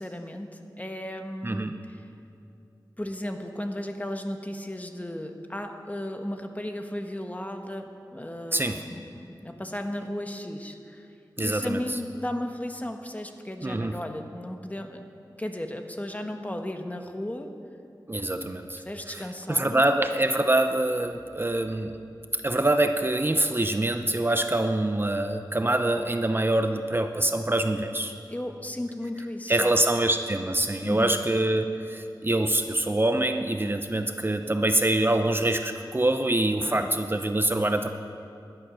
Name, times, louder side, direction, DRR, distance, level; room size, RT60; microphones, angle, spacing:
voice 1, 0.0-2.1 3.0-11.1 11.4-15.0 15.4-17.5 18.8-19.8 28.3-29.7 30.8-31.2 36.6-36.9, left 1 dB, 20° left, 5 dB, 1.2 m, -35 dB
voice 2, 1.4-1.7 8.5-8.8 11.4-11.8 13.6-13.9 18.1-18.8 19.1-19.2 19.5-21.9 22.4-28.1 29.5-37.9, right 1 dB, 30° right, 7 dB, 0.7 m, -25 dB
17.5 x 11.5 x 6.2 m, 2.5 s
wide cardioid pair, 75°, 8 cm